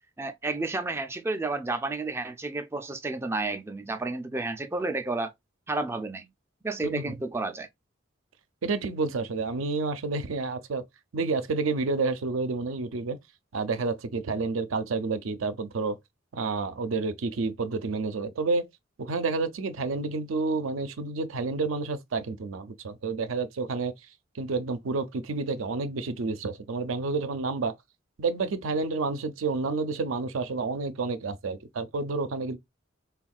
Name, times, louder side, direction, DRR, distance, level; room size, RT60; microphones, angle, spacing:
voice 1, 0.2-5.3 5.7-6.3 6.6-7.7, right 2 dB, 15° right, 0.3 m, -31 dB
voice 2, 6.8-7.2 8.6-10.8 11.1-13.2 13.5-16.0 16.3-18.7 19.0-23.9 24.3-27.7 28.2-32.6, right 3 dB, 85° right, 0.5 m, -29 dB
3.5 x 2.3 x 2.3 m
head